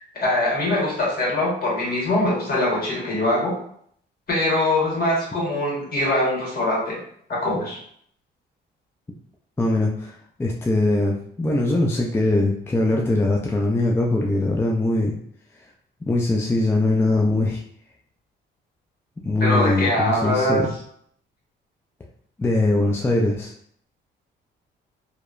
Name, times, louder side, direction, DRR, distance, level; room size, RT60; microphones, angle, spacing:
voice 1, 0.1-3.5 4.3-7.0 7.3-7.8 19.4-20.7, left 1 dB, 50° left, -3 dB, 1.2 m, -22 dB
voice 2, 9.6-15.2 16.1-17.6 19.2-20.7 22.4-23.5, left 2 dB, 10° left, -1 dB, 0.3 m, -21 dB
2.8 x 2.0 x 2.4 m, 0.65 s
cardioid pair, 90°, 20 cm